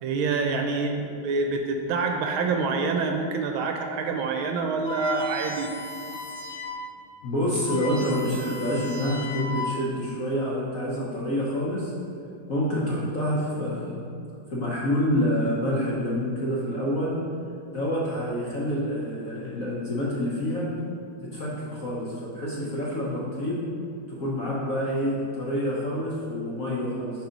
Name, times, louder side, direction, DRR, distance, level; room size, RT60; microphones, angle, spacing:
voice 1, 0.0-5.7, right 4 dB, 75° right, 3 dB, 1.4 m, -26 dB
sound 1, 4.9-6.9 7.2-7.3 7.5-10.0, left 2 dB, 25° left, 0.5 m, -36 dB
voice 2, 7.2-11.9 12.5-14.0 14.5-17.2 17.7-20.7 21.3-23.6 24.1-27.3, equal, 55° left, -6 dB, 1.0 m, -27 dB
5.5 x 4.6 x 5.1 m, 2.4 s
omnidirectional pair, 2.4 m